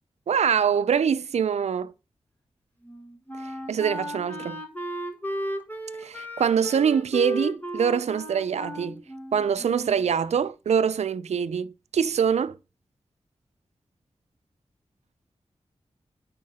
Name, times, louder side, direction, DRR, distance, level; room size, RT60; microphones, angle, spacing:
voice 1, 0.3-1.9 3.7-4.6 6.0-9.0 9.3-12.6, right 7 dB, 80° right, 0.5 m, -24 dB
Wind instrument woodwind instrument, 2.8-10.1, equal, 15° left, 1.4 m, -35 dB
9.7 x 3.8 x 5.4 m
wide cardioid pair, 115°, 11 cm